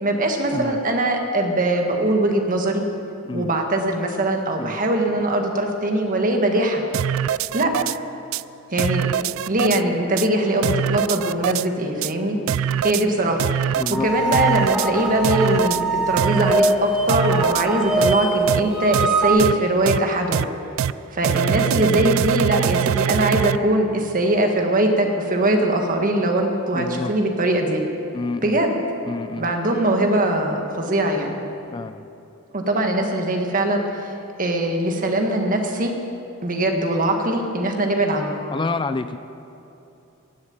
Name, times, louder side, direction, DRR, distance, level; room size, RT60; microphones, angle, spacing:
voice 1, 0.0-2.8 3.3-6.8 7.5-7.7 8.7-9.1 9.5-12.4 12.8-20.5 21.1-27.8 28.4-28.7 29.4-31.4 32.5-34.1 34.4-35.9 36.4-38.4, right 1 dB, 45° right, 3 dB, 1.6 m, -21 dB
sound 1, 6.9-8.0 8.3-8.4 8.8-9.8 10.2-10.3 10.6-11.7 12.0-12.1 12.5-13.0 13.4-14.0 14.3-14.9 15.2-15.8 16.2-16.7 17.1-17.7 18.0-18.1 18.5-18.6 18.9-19.1 19.4-19.5 19.9-20.0 20.3-20.4 20.8-20.9 21.2-23.6, right 9 dB, 75° right, 0.3 m, -23 dB
voice 2, 13.8-14.1 26.7-27.1 28.1-28.6 29.0-29.5 31.7-32.1 38.5-39.2, left 3 dB, 25° left, 11 dB, 0.3 m, -28 dB
sound 2, 13.9-19.3, right 2 dB, 5° right, 2.0 m, -23 dB
16.5 x 7.5 x 8.9 m, 2.8 s
head